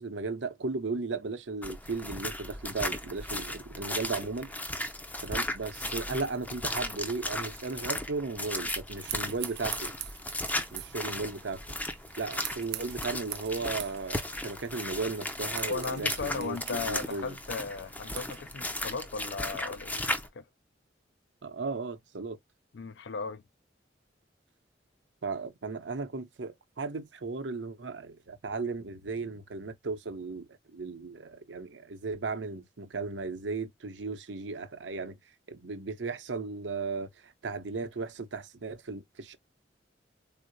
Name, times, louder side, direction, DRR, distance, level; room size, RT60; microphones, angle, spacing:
voice 1, 0.0-4.5 5.2-9.9 10.7-11.6 12.2-17.4 21.4-22.4 25.2-35.2 35.5-39.4, right 4 dB, 85° right, 0.7 m, -36 dB
sound 1, 1.6-20.3, left 1 dB, 10° left, 0.4 m, -36 dB
sound 2, 9.0-18.4, right 14 dB, 60° right, 0.4 m, -44 dB
voice 2, 15.7-20.5 22.7-23.4, left 4 dB, 75° left, 0.5 m, -36 dB
3.8 x 2.0 x 2.6 m
head